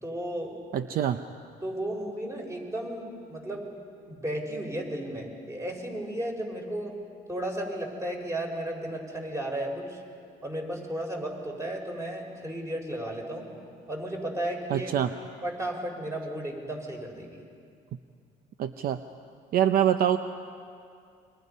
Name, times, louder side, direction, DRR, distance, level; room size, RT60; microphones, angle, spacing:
voice 1, 0.0-0.6 1.6-3.7 4.1-6.9 7.3-10.0 10.4-13.5 13.9-14.9 15.4-17.4, right 1 dB, 15° right, 1 dB, 4.8 m, -34 dB
voice 2, 0.7-1.2 14.7-15.1 18.6-19.0 19.5-20.2, right 10 dB, 60° right, 9 dB, 0.7 m, -24 dB
29.5 x 24.0 x 5.5 m, 2.4 s
cardioid pair, 110°, 17 cm